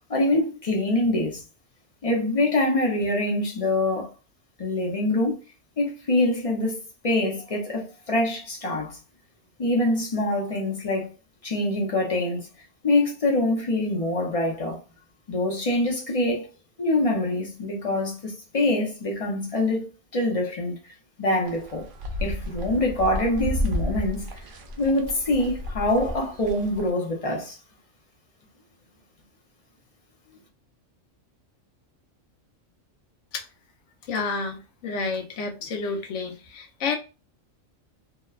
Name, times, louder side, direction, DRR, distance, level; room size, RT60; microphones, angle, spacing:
voice 1, 0.1-1.4 2.0-4.1 4.6-5.3 5.8-6.8 7.0-9.0 9.6-11.1 11.4-12.5 12.8-14.8 15.3-16.5 16.8-19.9 20.1-20.7 21.2-21.9 22.2-24.2 24.8-27.6, left 1 dB, 40° left, 0.6 m, -24 dB
sound 1, 21.5-26.9, left 1 dB, 60° right, 0.6 m, -32 dB
voice 2, 34.0-37.0, left 4 dB, 70° left, 1.0 m, -30 dB
2.9 x 2.1 x 2.3 m
omnidirectional pair, 1.3 m